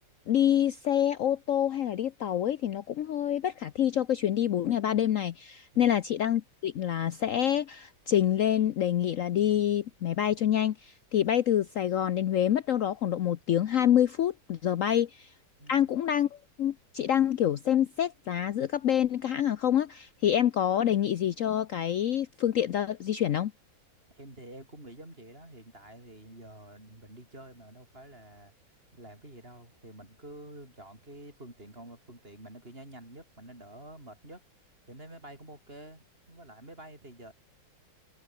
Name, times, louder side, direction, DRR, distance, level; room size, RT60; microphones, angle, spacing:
voice 1, 0.3-15.3 15.7-16.3 16.6-23.5, left 10 dB, 75° left, 0.7 m, -27 dB
voice 2, 24.1-28.5 28.9-34.4 34.8-37.3, right 1 dB, 25° right, 6.7 m, -48 dB
omnidirectional pair, 2.3 m